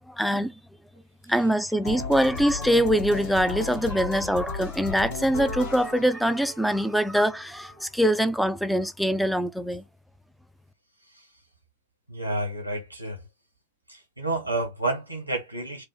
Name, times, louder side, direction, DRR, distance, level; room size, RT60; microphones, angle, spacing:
voice 1, 0.1-0.5 1.3-9.8, equal, ahead, 0.4 m, -24 dB
sound 1, 1.8-7.8, left 4 dB, 55° left, 1.2 m, -36 dB
voice 2, 12.1-13.2 13.9-15.8, right 2 dB, 90° right, 1.1 m, -30 dB
4.7 x 2.1 x 3.3 m
figure-of-eight pair, 90°, 0 cm